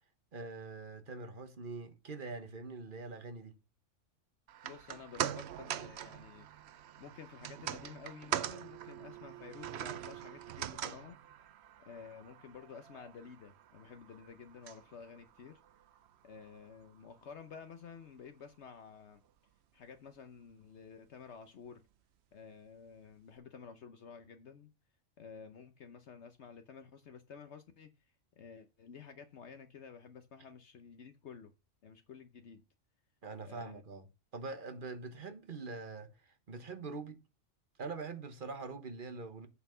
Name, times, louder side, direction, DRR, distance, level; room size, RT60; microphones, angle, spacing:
voice 1, 0.3-3.6 33.2-34.1 34.3-37.2 37.8-39.5, right 3 dB, 45° right, 1.2 m, -44 dB
sound 1, 4.5-16.9 17.2-17.3, right 10 dB, 65° right, 0.8 m, -43 dB
voice 2, 4.6-6.5 7.0-11.2 11.8-15.6 16.2-19.2 19.7-21.8 22.3-24.7 25.2-27.9 28.4-31.5 31.8-32.6 33.4-33.8, left 6 dB, 65° left, 1.1 m, -52 dB
8.2 x 5.7 x 5.5 m
omnidirectional pair, 1.3 m